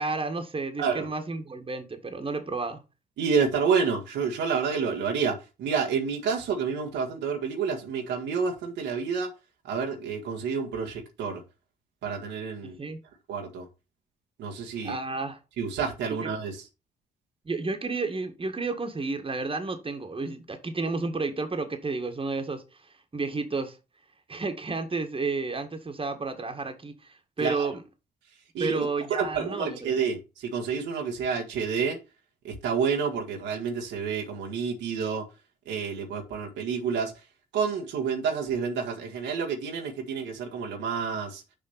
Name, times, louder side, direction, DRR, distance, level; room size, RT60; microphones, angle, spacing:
voice 1, 0.0-2.8 12.6-13.0 14.8-15.4 16.2-16.3 17.5-22.6 23.1-23.8 24.3-27.8 28.6-29.9, right 3 dB, 25° right, 1.9 m, -31 dB
voice 2, 3.2-9.3 9.6-11.4 12.0-12.7 13.3-13.7 14.4-15.0 15.6-16.7 27.4-27.7 28.5-32.0 32.4-35.2 35.6-37.1 37.5-41.4, right 6 dB, 65° right, 1.7 m, -29 dB
7.0 x 4.9 x 5.8 m
hypercardioid pair, 45°, 20 cm